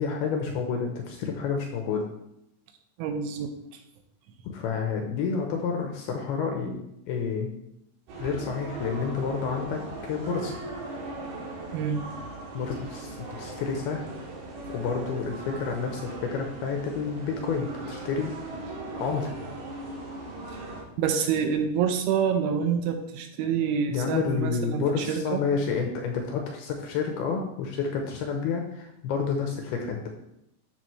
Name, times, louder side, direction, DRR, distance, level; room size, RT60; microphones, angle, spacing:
voice 1, 0.0-2.1 4.4-6.8 7.1-7.5 8.2-9.8 10.1-10.6 12.5-14.0 14.7-18.3 19.0-19.3 23.9-30.1, left 5 dB, 75° left, 2 dB, 2.4 m, -29 dB
voice 2, 3.0-3.5 11.7-12.0 21.0-25.4, right 7 dB, 90° right, 5 dB, 3.4 m, -27 dB
sound 1, 8.1-20.8, right 2 dB, 55° right, 2.9 m, -38 dB
12.5 x 6.3 x 3.2 m, 0.82 s
omnidirectional pair, 5.3 m